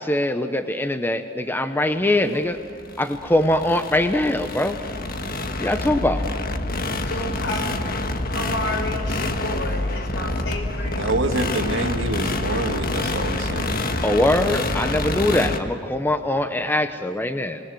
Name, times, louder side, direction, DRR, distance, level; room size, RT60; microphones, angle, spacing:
voice 1, 0.0-2.6 3.0-4.8 5.6-6.2 14.0-17.6, left 1 dB, 10° left, 8 dB, 0.9 m, -22 dB
sound 1, 2.3-15.6, left 2 dB, 50° left, 1.5 m, -27 dB
voice 2, 7.0-7.7 8.3-11.0, left 1 dB, 65° left, 5 dB, 5.0 m, -31 dB
voice 3, 10.9-13.7, right 2 dB, 85° right, 6 dB, 1.9 m, -26 dB
27.5 x 20.0 x 7.8 m, 2.6 s
head